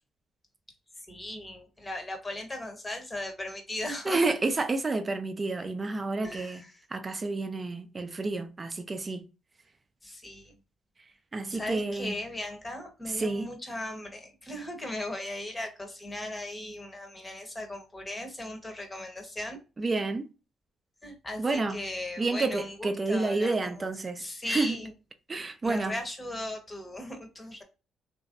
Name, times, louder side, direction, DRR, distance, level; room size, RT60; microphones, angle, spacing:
voice 1, 1.1-4.2 6.2-6.6 10.0-10.5 11.5-19.6 21.0-21.4 21.7-23.9 24.2-24.9 25.6-27.6, left 1 dB, 20° left, 0.9 m, -37 dB
voice 2, 4.0-6.6 6.9-9.2 11.3-12.2 13.1-13.5 19.8-20.3 21.4-21.8 22.2-24.8 25.3-26.0, right 3 dB, 30° right, 0.5 m, -30 dB
2.9 x 2.6 x 2.4 m
cardioid pair, 90°, 0 cm